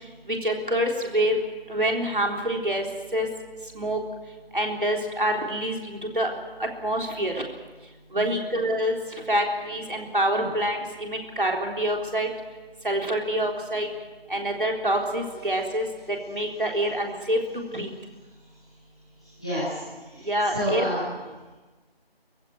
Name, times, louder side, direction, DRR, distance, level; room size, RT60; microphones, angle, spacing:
voice 1, 0.3-1.4 1.7-2.8 3.1-3.3 3.7-4.0 4.5-6.3 6.6-7.4 8.1-8.9 9.3-12.3 12.8-13.9 14.3-17.4 17.7-17.9 20.3-20.8, right 1 dB, 55° right, 1 dB, 3.8 m, -26 dB
voice 2, 8.1-8.4 10.3-10.5 18.2-18.8 19.2-21.1, equal, 5° left, -13 dB, 1.8 m, -31 dB
24.5 x 15.5 x 9.3 m, 1.3 s
figure-of-eight pair, 175°, 31 cm